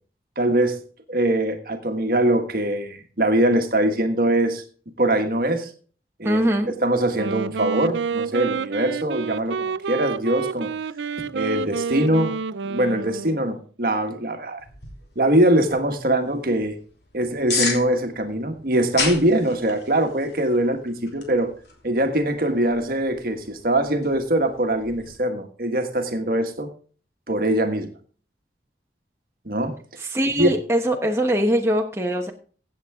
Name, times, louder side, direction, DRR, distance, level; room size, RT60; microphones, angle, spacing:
voice 1, 0.4-0.8 1.1-4.6 5.0-5.7 6.2-6.4 6.8-10.7 11.3-12.3 12.6-14.6 15.1-16.8 17.1-21.5 21.8-26.7 27.3-27.9 29.4-29.8 30.4-30.5, right 1 dB, 55° right, 6 dB, 1.4 m, -22 dB
voice 2, 6.2-6.7 30.0-32.3, equal, 15° right, 1 dB, 1.0 m, -22 dB
Wind instrument woodwind instrument, 7.0-13.6, right 5 dB, 90° right, 0.5 m, -29 dB
sound 1, 14.6-25.2, left 4 dB, 70° left, 3.1 m, -35 dB
16.0 x 7.8 x 3.6 m, 0.41 s
head